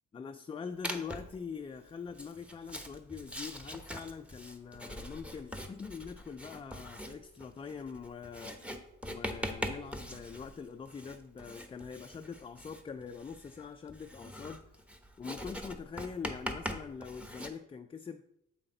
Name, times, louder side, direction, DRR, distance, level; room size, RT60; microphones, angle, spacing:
voice 1, 0.1-8.5 9.1-14.6 15.2-18.2, left 6 dB, 20° left, 7 dB, 0.3 m, -43 dB
Writing, 0.8-1.4 2.1-17.5, equal, 5° right, 0.8 m, -42 dB
7.8 x 5.7 x 3.8 m, 0.80 s
cardioid pair, 90°, 30 cm